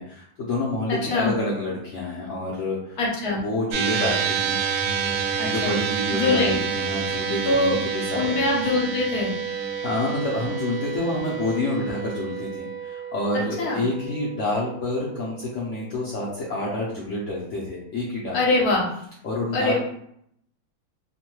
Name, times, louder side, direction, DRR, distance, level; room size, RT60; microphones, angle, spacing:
voice 1, 0.0-3.0 3.3-4.5 5.4-8.4 9.8-18.6 19.2-19.8, left 2 dB, 80° left, -6 dB, 0.6 m, -28 dB
voice 2, 0.9-1.3 3.0-3.4 5.4-5.8 6.1-6.6 7.5-7.8 8.1-9.3 13.3-13.8 18.3-18.8 19.5-19.8, left 2 dB, 60° left, -3 dB, 1.1 m, -23 dB
sound 1, 3.7-16.2, right 6 dB, 75° right, 1.2 m, -29 dB
3.0 x 2.2 x 3.0 m, 0.71 s
omnidirectional pair, 2.1 m